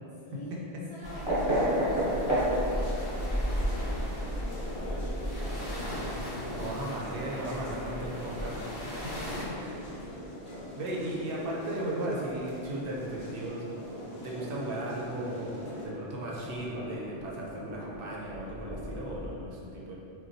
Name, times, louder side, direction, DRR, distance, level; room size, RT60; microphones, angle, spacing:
voice 1, 0.2-0.6 0.8-6.0 9.5-9.9, left 1 dB, 45° left, -11 dB, 0.4 m, -47 dB
sound 1, 1.0-9.4, equal, 25° left, 0.8 m, -35 dB
sound 2, 1.2-19.3, equal, 30° right, 1.0 m, -36 dB
sound 3, 1.3-15.9, left 1 dB, 75° left, 0.8 m, -45 dB
voice 2, 6.5-8.6 9.4-9.8 10.7-13.6 14.2-19.9, right 1 dB, 65° right, -4 dB, 0.7 m, -36 dB
3.9 x 2.1 x 2.5 m, 2.7 s
omnidirectional pair, 1.1 m